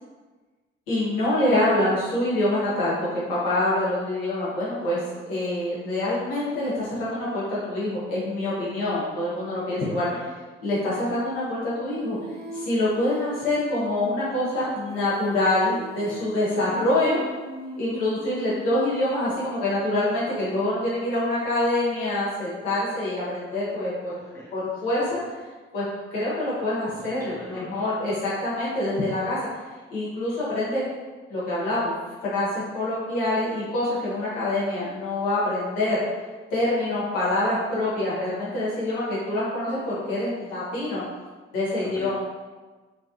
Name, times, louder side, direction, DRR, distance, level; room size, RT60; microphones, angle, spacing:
voice 1, 0.9-5.0 5.3-10.1 10.6-12.2 12.5-17.2 17.8-24.1 24.5-25.2 25.7-25.8 26.1-29.4 29.9-30.8 31.3-31.9 32.2-36.0 36.5-41.0 41.5-42.1, left 1 dB, 70° left, -8 dB, 1.3 m, -25 dB
Female singing, 11.9-19.6, right 2 dB, 80° right, 1.0 m, -41 dB
voice 2, 24.1-24.6 26.9-27.9 41.9-42.1, left 1 dB, 10° left, -4 dB, 0.9 m, -43 dB
3.5 x 3.1 x 2.8 m, 1.3 s
figure-of-eight pair, 40°, 31 cm